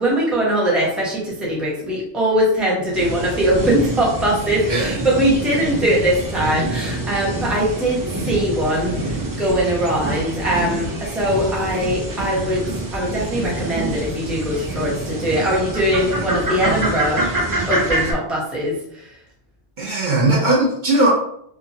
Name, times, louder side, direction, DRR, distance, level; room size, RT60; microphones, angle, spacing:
voice 1, 0.0-12.6 12.9-17.2 17.7-19.0, right 1 dB, ahead, -5 dB, 0.6 m, -21 dB
sound 1, 2.9-18.1, right 1 dB, 35° right, 0.3 m, -26 dB
voice 2, 19.8-21.1, right 2 dB, 55° right, -4 dB, 0.7 m, -18 dB
2.8 x 2.3 x 2.7 m, 0.72 s
omnidirectional pair, 1.1 m